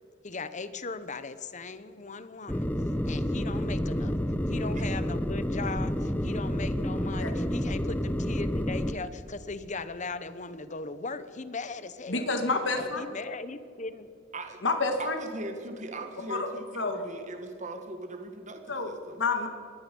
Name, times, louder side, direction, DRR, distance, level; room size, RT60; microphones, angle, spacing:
voice 1, 0.2-2.7 3.1-4.2 4.5-14.1, left 3 dB, 40° left, 13 dB, 1.1 m, -38 dB
sound 1, 2.5-8.9, equal, 10° left, 0.8 m, -29 dB
voice 2, 12.1-13.0 14.6-15.2 16.3-16.5 16.8-17.1 18.7-18.9 19.2-19.5, left 3 dB, 70° left, 5 dB, 2.2 m, -28 dB
voice 3, 14.3-14.6 15.0-19.2, right 2 dB, 40° right, 5 dB, 1.7 m, -40 dB
25.0 x 20.0 x 5.5 m, 2.5 s
head